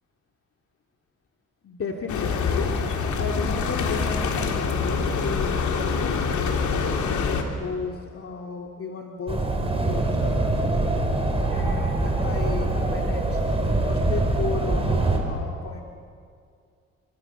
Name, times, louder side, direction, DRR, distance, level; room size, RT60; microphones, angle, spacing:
voice 1, 1.6-2.8 3.2-10.7 11.4-13.4 13.7-15.8, left 4 dB, 50° left, 1 dB, 2.2 m, -34 dB
sound 1, 2.1-7.4, left 5 dB, 75° left, 3.2 m, -25 dB
sound 2, 9.3-15.2, right 2 dB, 20° right, 5.0 m, -24 dB
28.5 x 26.0 x 6.8 m, 2.3 s
cardioid pair, 90°, 30 cm